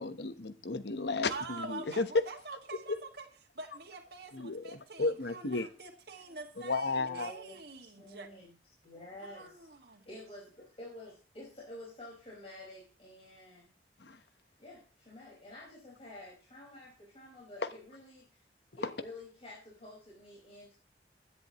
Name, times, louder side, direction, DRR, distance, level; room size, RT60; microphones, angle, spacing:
voice 1, 0.0-2.1 2.9-3.0 4.3-5.7 6.6-7.3 14.0-14.2, left 3 dB, 70° left, 1.1 m, -34 dB
voice 2, 1.3-3.3 3.6-8.3 9.2-10.1, right 4 dB, 60° right, 1.9 m, -46 dB
voice 3, 7.0-8.5 8.8-13.7 14.6-18.4 18.8-20.7, left 1 dB, 35° left, 5.0 m, -50 dB
16.5 x 10.5 x 3.1 m
head